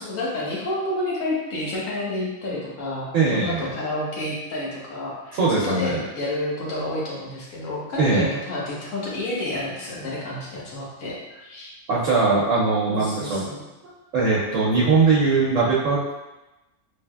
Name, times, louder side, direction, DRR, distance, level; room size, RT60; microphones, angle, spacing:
voice 1, 0.0-11.1 11.4-11.7 12.9-13.6, left 1 dB, 75° left, -5 dB, 1.3 m, -29 dB
voice 2, 3.1-3.7 5.3-6.0 8.0-8.3 11.9-13.5 13.8-16.1, right 4 dB, 75° right, -6 dB, 1.0 m, -21 dB
3.3 x 3.1 x 2.3 m, 1.0 s
omnidirectional pair, 1.4 m